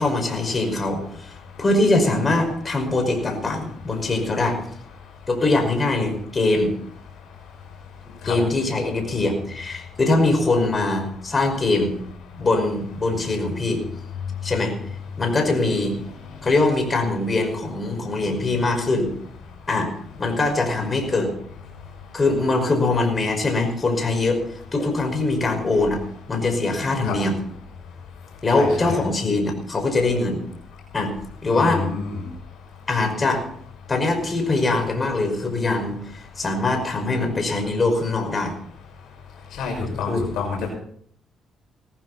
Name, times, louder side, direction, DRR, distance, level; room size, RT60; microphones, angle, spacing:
voice 1, 0.0-4.6 5.3-6.7 8.2-11.9 12.4-13.8 14.4-14.7 15.2-15.9 16.4-19.1 19.7-19.9 20.2-21.3 22.1-24.4 24.7-26.0 26.3-27.4 28.4-30.4 30.9-31.1 31.4-31.9 32.9-33.4 33.9-38.5 39.9-40.2, left 2 dB, 30° left, 4 dB, 5.4 m, -22 dB
voice 2, 28.5-28.9 31.5-32.2 39.6-40.7, left 5 dB, 80° left, 0 dB, 6.0 m, -28 dB
19.0 x 15.0 x 4.2 m, 0.62 s
cardioid pair, 90°, 0 cm